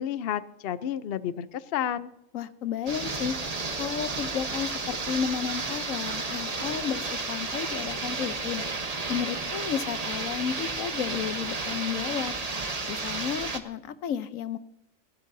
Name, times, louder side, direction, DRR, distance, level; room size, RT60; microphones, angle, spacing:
voice 1, 0.0-2.1, left 10 dB, 55° left, 14 dB, 0.8 m, -31 dB
voice 2, 2.3-3.3 3.8-8.6 9.1-12.3 12.9-14.6, left 8 dB, 85° left, 13 dB, 1.2 m, -32 dB
sound 1, 2.9-13.6, right 3 dB, 30° right, 1.1 m, -32 dB
28.5 x 11.5 x 2.7 m, 0.82 s
omnidirectional pair, 1.4 m